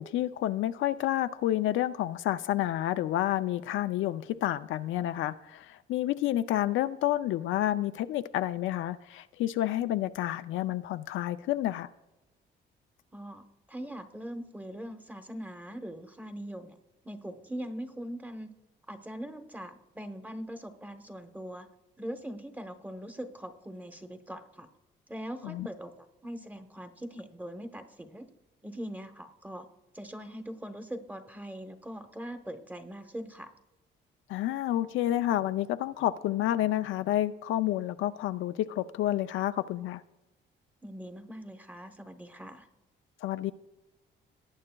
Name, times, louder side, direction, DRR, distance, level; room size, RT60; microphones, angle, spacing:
voice 1, 0.0-11.9 25.4-25.7 34.3-40.0 43.2-43.5, left 13 dB, 80° left, 0.4 m, -29 dB
voice 2, 13.1-16.8 17.0-18.5 18.9-21.7 22.0-24.7 25.1-28.3 28.6-29.7 29.9-33.5 40.8-42.7, equal, 10° right, 1.0 m, -41 dB
18.5 x 8.6 x 2.3 m
cardioid pair, 90°, 20 cm